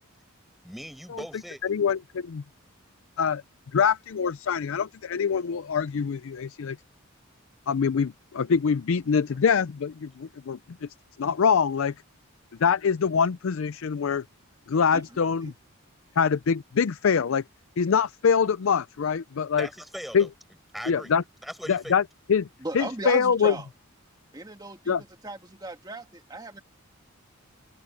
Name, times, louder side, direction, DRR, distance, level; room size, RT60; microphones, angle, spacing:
voice 1, 0.6-1.9 19.6-20.3 20.7-21.1 21.4-22.0, equal, ahead, 7.1 m, -39 dB
voice 2, 1.6-2.0 2.3-2.4 3.2-3.4 3.7-6.8 7.7-10.6 11.2-11.9 12.6-14.2 14.7-15.5 16.2-17.4 17.8-19.7 20.1-20.3 20.9-21.2 21.7-22.0 22.3-22.5 22.7-23.5 24.9-25.0, left 6 dB, 65° left, 0.4 m, -24 dB
voice 3, 22.6-23.7 24.3-25.0 25.2-26.6, right 2 dB, 20° right, 2.0 m, -36 dB
head